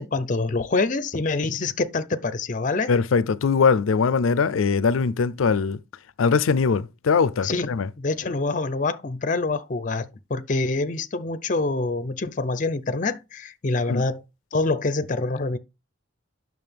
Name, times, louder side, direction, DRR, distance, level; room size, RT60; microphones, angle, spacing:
voice 1, 0.0-2.9 7.4-7.7 8.0-14.2 14.5-15.6, left 3 dB, 40° left, 0.6 m, -26 dB
voice 2, 2.9-5.8 6.2-7.9 13.9-14.1, left 5 dB, 90° left, 0.4 m, -21 dB
9.2 x 6.2 x 3.4 m
head